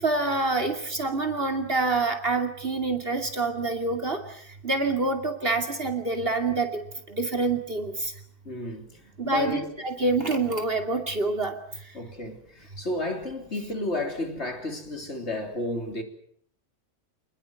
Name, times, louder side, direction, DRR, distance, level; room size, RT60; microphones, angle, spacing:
voice 1, 0.0-4.2 4.6-6.8 7.1-8.1 9.2-11.5, right 3 dB, 40° right, 2.8 m, -26 dB
voice 2, 8.5-9.7 11.9-16.0, left 2 dB, 45° left, 3.7 m, -32 dB
28.0 x 20.5 x 7.8 m
omnidirectional pair, 1.6 m